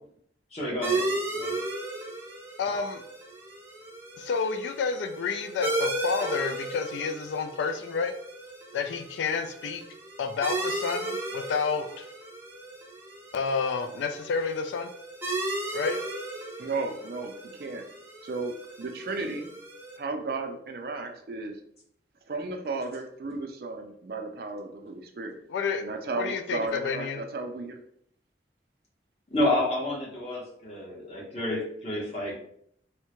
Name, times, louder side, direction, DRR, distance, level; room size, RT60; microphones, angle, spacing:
voice 1, 0.5-1.6 29.3-32.3, left 1 dB, 35° left, -4 dB, 0.9 m, -30 dB
sound 1, 0.8-20.0, right 2 dB, 15° right, 0.6 m, -35 dB
voice 2, 2.6-3.0 4.2-8.1 8.7-9.8 10.2-12.1 13.3-14.9 15.7-16.0 25.5-25.9 26.1-27.2, left 5 dB, 85° left, 7 dB, 0.3 m, -30 dB
voice 3, 16.6-17.8 18.2-19.5 20.0-21.6 22.3-25.3 25.8-27.8, right 3 dB, 55° right, 4 dB, 0.4 m, -34 dB
3.5 x 2.1 x 2.9 m, 0.68 s
head